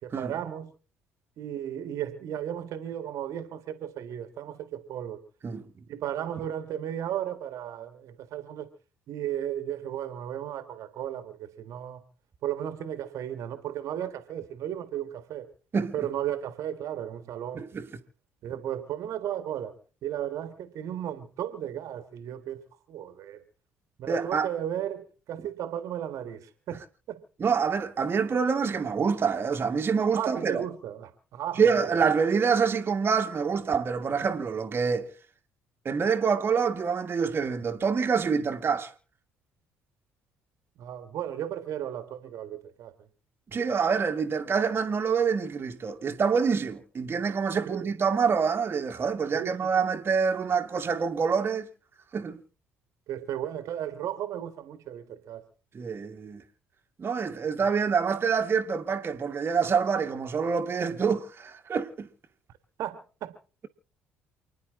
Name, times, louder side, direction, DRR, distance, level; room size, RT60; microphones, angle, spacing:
voice 1, 0.0-0.7 1.4-5.2 5.9-8.7 9.1-12.0 12.4-15.5 15.9-17.7 18.4-19.8 20.0-23.4 24.0-27.2 30.1-31.9 40.8-42.9 47.7-47.9 49.3-49.8 53.1-55.4 62.8-63.4, right 10 dB, 55° right, 1.6 m, -35 dB
voice 2, 17.5-17.9 24.1-24.5 27.4-30.6 31.6-35.1 35.8-38.9 43.5-51.7 52.1-52.4 55.7-56.4 57.0-62.1, right 6 dB, 35° right, 1.7 m, -26 dB
29.0 x 10.5 x 3.7 m
hypercardioid pair, 55°, 6 cm